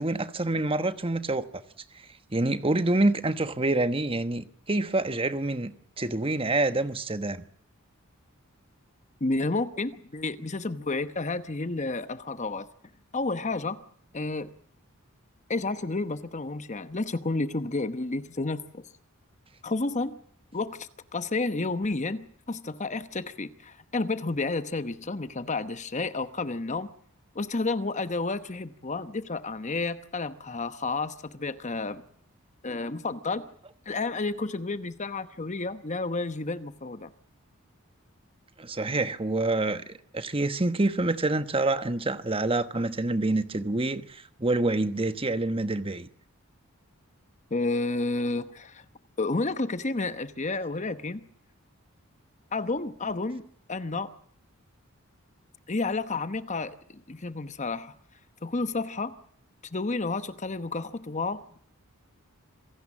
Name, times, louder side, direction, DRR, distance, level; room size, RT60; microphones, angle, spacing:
voice 1, 0.0-1.6 2.3-5.7 6.0-7.4 38.6-46.1, right 2 dB, 25° right, 1.1 m, -27 dB
voice 2, 9.2-12.7 13.1-13.8 14.1-14.5 15.5-18.8 19.6-20.2 20.5-26.9 27.3-32.0 32.6-33.4 33.9-37.1 47.5-48.8 49.2-51.2 52.5-53.4 53.7-54.1 55.7-57.9 58.4-59.1 59.7-61.6, left 3 dB, 35° left, 1.0 m, -31 dB
26.5 x 17.0 x 7.4 m
head